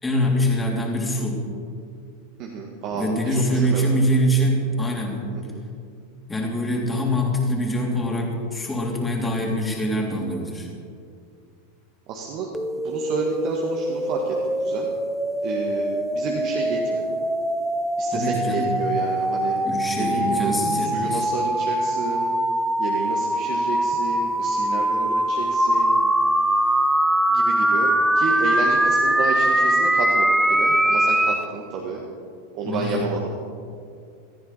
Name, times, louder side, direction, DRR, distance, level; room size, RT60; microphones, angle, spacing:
voice 1, 0.0-1.4 2.9-5.3 6.3-10.7 18.1-18.8 19.6-21.2 32.6-33.0, equal, 15° left, -1 dB, 3.3 m, -24 dB
voice 2, 2.4-3.9 5.3-5.6 12.1-12.5 12.8-14.9 15.4-17.1 18.0-19.6 20.0-22.3 22.8-26.0 27.3-32.0 32.5-33.3, right 4 dB, 45° right, -1 dB, 1.8 m, -30 dB
sound 1, 12.5-31.4, right 1 dB, 5° right, 0.6 m, -22 dB
18.0 x 14.0 x 4.2 m, 2.3 s
figure-of-eight pair, 85°, 0 cm